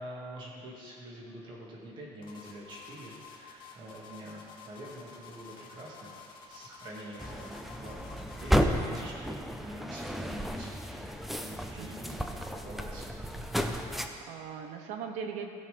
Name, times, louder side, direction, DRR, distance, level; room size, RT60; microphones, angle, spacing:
voice 1, 0.0-6.2 6.5-13.1, right 1 dB, 40° right, -4 dB, 2.4 m, -46 dB
sound 1, 2.2-8.6, left 6 dB, 40° left, 1.6 m, -51 dB
sound 2, 7.2-14.1, equal, ahead, 0.4 m, -33 dB
voice 2, 13.8-15.5, right 7 dB, 75° right, 5 dB, 1.1 m, -40 dB
15.5 x 5.7 x 5.2 m, 2.3 s
cardioid pair, 170°, 12 cm